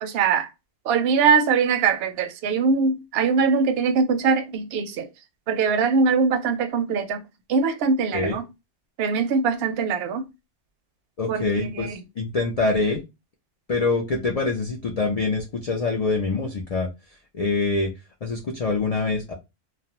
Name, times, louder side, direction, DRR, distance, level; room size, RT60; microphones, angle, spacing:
voice 1, 0.0-0.5 0.9-5.1 5.5-7.2 7.5-8.5 9.0-10.3 11.3-12.0, right 5 dB, 65° right, 0.7 m, -22 dB
voice 2, 11.2-13.0 13.7-16.9 17.3-17.9 18.2-19.3, left 3 dB, 70° left, 0.3 m, -25 dB
2.3 x 2.1 x 2.8 m
omnidirectional pair, 1.2 m